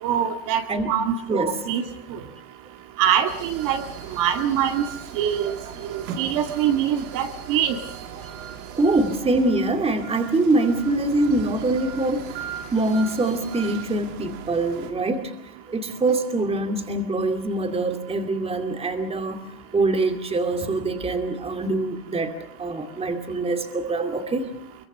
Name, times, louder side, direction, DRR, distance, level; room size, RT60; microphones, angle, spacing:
voice 1, 0.0-0.6 0.9-1.8 2.1-2.2 3.0-3.8 4.2-4.8 5.1-5.6 5.9-7.8, right 9 dB, 45° right, 6 dB, 2.2 m, -23 dB
voice 2, 1.3-1.6 5.6-5.8 8.7-12.3 12.7-15.3 15.7-19.5 19.7-24.4, right 2 dB, 15° right, 6 dB, 2.4 m, -24 dB
sound 1, 3.3-14.9, right 8 dB, 70° right, 3.4 m, -38 dB
24.0 x 23.0 x 6.6 m, 0.68 s
supercardioid pair, 140°, 45 cm